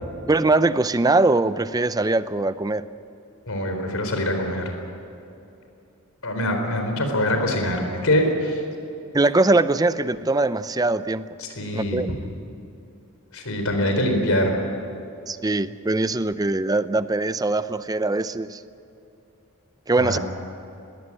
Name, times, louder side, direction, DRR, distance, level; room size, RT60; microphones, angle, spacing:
voice 1, 0.3-2.8 9.1-11.2 11.7-12.1 15.3-18.6 19.9-20.2, right 2 dB, 15° right, 14 dB, 0.5 m, -21 dB
voice 2, 3.5-4.7 6.2-8.6 11.4-12.1 13.3-14.5 20.0-20.2, left 1 dB, 70° left, 4 dB, 4.2 m, -24 dB
20.0 x 17.5 x 10.0 m, 2.8 s
head